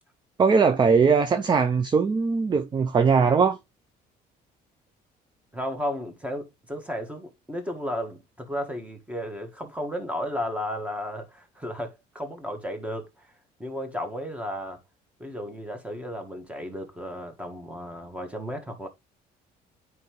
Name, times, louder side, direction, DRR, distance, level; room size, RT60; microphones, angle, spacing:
voice 1, 0.4-3.6, right 5 dB, 25° right, 0.5 m, -20 dB
voice 2, 5.5-13.3 13.6-14.8 15.2-18.9, equal, 5° right, 1.5 m, -34 dB
9.6 x 4.7 x 3.0 m
cardioid pair, 110°, 17 cm